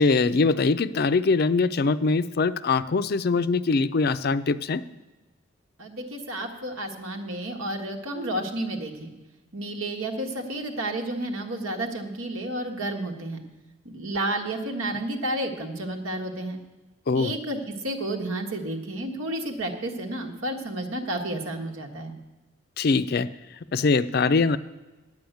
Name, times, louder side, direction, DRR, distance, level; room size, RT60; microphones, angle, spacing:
voice 1, 0.0-4.8 17.1-17.3 22.8-23.3 23.7-24.6, left 4 dB, 50° left, 13 dB, 0.4 m, -22 dB
voice 2, 5.8-9.1 9.5-13.4 13.9-16.6 17.2-17.6 17.8-22.1, right 1 dB, 85° right, 3 dB, 1.6 m, -31 dB
9.6 x 7.1 x 9.1 m, 1.2 s
head